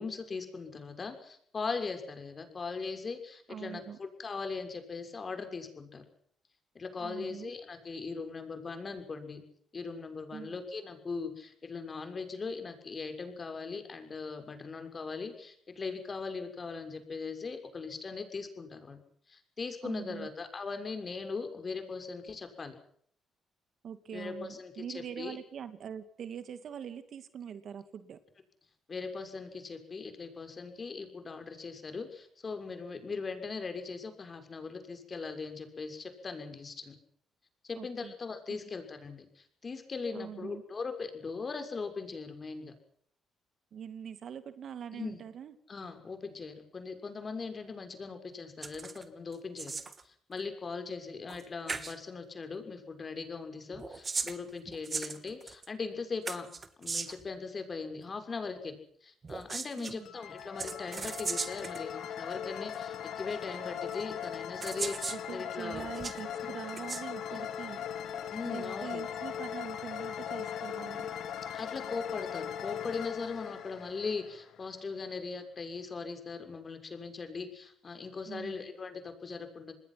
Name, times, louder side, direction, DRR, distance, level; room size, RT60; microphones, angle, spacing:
voice 1, 0.0-6.0 6.7-9.4 9.7-19.0 19.3-22.7 24.1-25.4 28.9-37.0 37.6-42.7 44.9-45.2 45.7-49.8 50.3-56.5 56.8-58.8 59.0-65.9 67.3-67.4 68.3-69.0 71.5-79.7, left 4 dB, 35° left, 7 dB, 6.4 m, -40 dB
voice 2, 3.5-4.0 7.0-7.5 10.3-10.6 19.8-20.3 23.8-28.2 37.7-38.1 38.6-38.7 40.1-40.6 43.7-45.6 59.7-60.1 65.1-67.8 68.4-71.1 78.3-78.7, right 8 dB, 60° right, 11 dB, 2.5 m, -43 dB
sound 1, 48.6-49.0 49.3-50.0 51.3-51.4 51.7-52.0 53.7-55.7 56.3-57.3 59.2-59.9 60.6-61.8 62.7-62.8 63.9-64.0 64.6-65.2 65.7-66.2 66.7-67.0, right 4 dB, 35° right, 2.6 m, -37 dB
sound 2, 60.0-74.8, left 9 dB, 75° left, 3.1 m, -39 dB
27.5 x 20.5 x 6.0 m, 0.63 s
cardioid pair, 90°, 0 cm